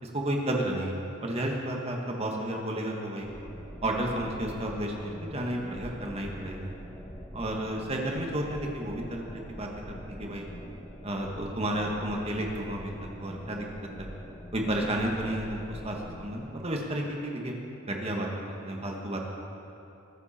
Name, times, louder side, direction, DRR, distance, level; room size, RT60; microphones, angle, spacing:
voice 1, 0.0-3.3 3.8-6.7 7.3-10.5 11.0-13.6 14.0-14.1 14.5-17.5 17.9-19.2, right 1 dB, 30° right, 0 dB, 1.7 m, -32 dB
sound 1, 3.2-16.5, equal, 15° left, 1.1 m, -45 dB
21.5 x 10.5 x 4.4 m, 2.9 s
head